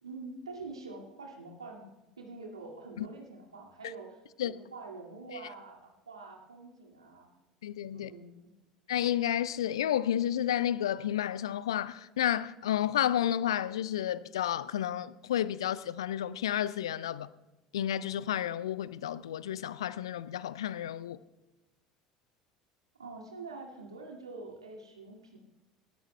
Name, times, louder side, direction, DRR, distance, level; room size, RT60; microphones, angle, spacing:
voice 1, 0.0-7.4 7.9-8.5 23.0-25.4, right 3 dB, 80° right, 2.1 m, -46 dB
voice 2, 7.6-8.1 8.9-17.3 17.7-21.2, left 11 dB, 70° left, 0.5 m, -31 dB
29.0 x 13.5 x 2.2 m
figure-of-eight pair, 65°, 3 cm